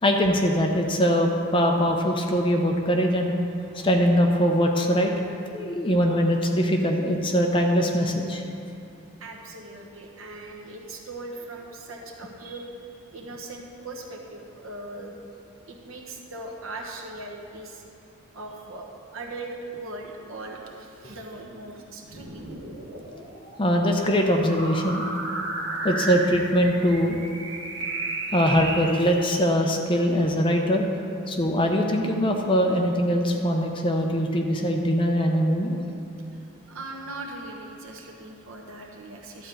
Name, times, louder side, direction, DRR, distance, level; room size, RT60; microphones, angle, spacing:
voice 1, 0.0-3.3 3.7-5.1 5.5-8.4 21.0-21.1 23.3-25.4 25.8-27.2 28.3-30.9 31.3-35.8, equal, 25° left, 2 dB, 0.7 m, -22 dB
voice 2, 9.2-15.2 15.7-17.8 18.3-22.5 36.3-39.5, right 2 dB, 70° right, 0 dB, 1.2 m, -39 dB
sound 1, 22.0-29.4, right 2 dB, 55° right, 1.5 m, -33 dB
12.0 x 4.5 x 7.8 m, 2.7 s
head